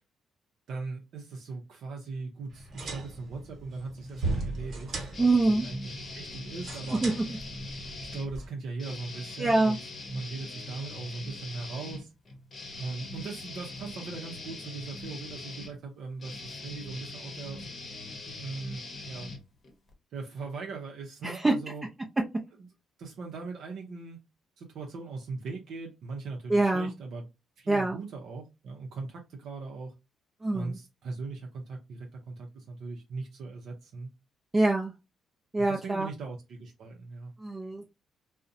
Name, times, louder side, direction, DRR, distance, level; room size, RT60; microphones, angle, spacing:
voice 1, 0.7-7.0 8.0-9.8 10.1-12.1 12.8-17.6 18.3-19.3 20.1-21.8 22.6-22.7 23.0-24.2 24.6-27.2 27.6-29.9 30.5-34.1 35.7-37.3, right 4 dB, 75° right, 0.5 m, -39 dB
sound 1, 2.5-8.5, right 2 dB, 55° right, 1.1 m, -38 dB
sound 2, 5.1-8.3 8.8-19.9, left 2 dB, 45° left, 0.8 m, -42 dB
voice 2, 5.2-5.6 6.9-7.1 9.4-9.8 21.2-21.5 26.5-26.9 27.7-28.0 30.4-30.8 34.5-34.9 35.5-36.1 37.4-37.9, right 2 dB, 20° right, 0.4 m, -25 dB
2.5 x 2.0 x 2.6 m
cardioid pair, 90°, 0 cm